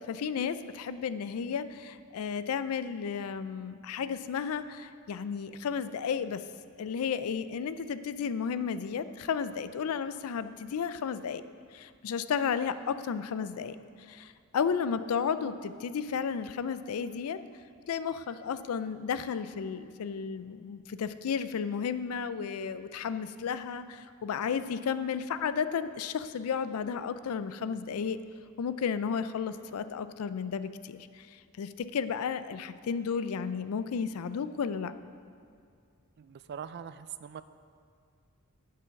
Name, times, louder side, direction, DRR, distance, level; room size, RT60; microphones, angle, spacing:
voice 1, 0.1-6.4 6.8-11.4 11.7-17.4 17.9-28.2 28.6-34.9, left 6 dB, 80° left, 13 dB, 0.4 m, -33 dB
voice 2, 36.2-37.4, right 8 dB, 50° right, 13 dB, 0.3 m, -42 dB
7.6 x 6.9 x 5.8 m, 2.2 s
head